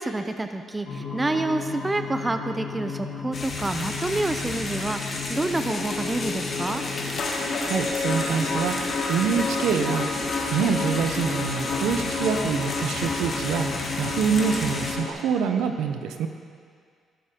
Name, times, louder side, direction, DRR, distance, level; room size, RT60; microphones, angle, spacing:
voice 1, 0.0-6.8, right 2 dB, 20° right, 8 dB, 0.5 m, -28 dB
sound 1, 0.9-15.1, left 3 dB, 70° left, 1.7 m, -31 dB
sound 2, 3.3-14.9, left 2 dB, 40° left, 1.4 m, -33 dB
voice 2, 7.3-16.3, right 6 dB, 85° right, 7 dB, 0.7 m, -26 dB
15.0 x 6.8 x 3.7 m, 2.1 s
cardioid pair, 90°, 0 cm